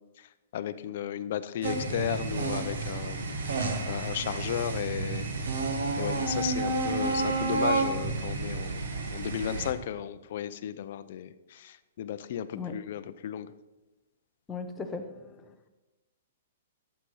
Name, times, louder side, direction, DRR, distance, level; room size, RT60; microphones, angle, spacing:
voice 1, 0.0-5.5 6.0-13.5, left 10 dB, 45° left, 12 dB, 0.6 m, -35 dB
sound 1, 1.6-9.7, right 3 dB, 75° right, 1.6 m, -30 dB
voice 2, 14.5-15.5, left 4 dB, 10° left, 4 dB, 0.7 m, -38 dB
11.5 x 7.6 x 5.5 m, 1.1 s
hypercardioid pair, 175°, 0 cm